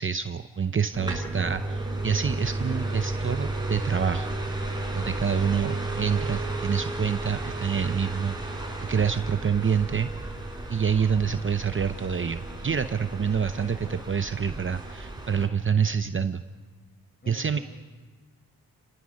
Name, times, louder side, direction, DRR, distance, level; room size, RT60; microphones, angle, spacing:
voice 1, 0.0-4.3 4.9-8.6 8.9-10.1 10.7-16.4 17.3-17.6, right 7 dB, 35° right, 9 dB, 0.7 m, -27 dB
sound 1, 0.9-15.5, right 2 dB, 10° right, 5.2 m, -33 dB
voice 2, 13.2-14.0 17.2-17.6, equal, 25° left, 2 dB, 6.6 m, -48 dB
30.0 x 19.0 x 6.5 m, 1.4 s
cardioid pair, 95°, 36 cm